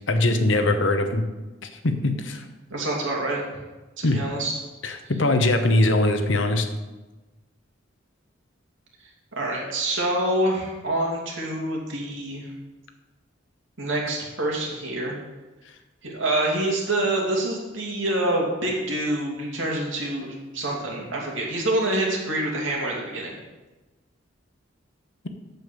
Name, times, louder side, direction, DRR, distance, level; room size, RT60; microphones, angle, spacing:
voice 1, 0.1-1.2 1.6-2.4 4.0-4.2 4.8-6.7, left 2 dB, 70° left, 7 dB, 1.0 m, -21 dB
voice 2, 2.7-3.4 4.0-4.6 5.0-5.1 9.4-12.5 13.8-15.2 16.0-23.4, right 1 dB, 75° right, -2 dB, 2.6 m, -26 dB
7.9 x 6.8 x 6.9 m, 1.1 s
head